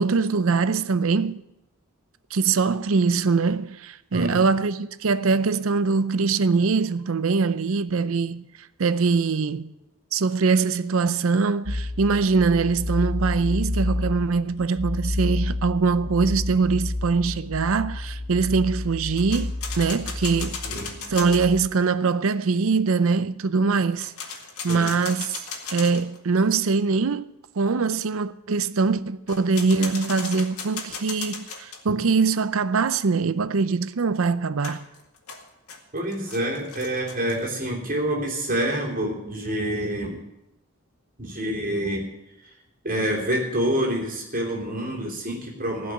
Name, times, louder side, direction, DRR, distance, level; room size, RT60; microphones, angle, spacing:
voice 1, 0.0-1.4 2.3-8.4 8.8-9.7 10.1-20.6 21.1-24.1 24.6-25.3 25.7-27.3 27.6-34.8, right 4 dB, 65° right, 0.5 m, -23 dB
voice 2, 4.1-4.4 20.6-21.0 24.7-25.0 35.9-40.2 41.2-42.1 42.4-42.5 42.8-45.9, right 1 dB, 40° right, 3.4 m, -27 dB
sound 1, 11.6-21.7, left 2 dB, 60° left, 1.9 m, -30 dB
sound 2, 19.2-21.5 23.9-26.2 29.3-31.8 34.6-37.5, left 5 dB, 85° left, 2.1 m, -36 dB
16.0 x 5.5 x 10.0 m
head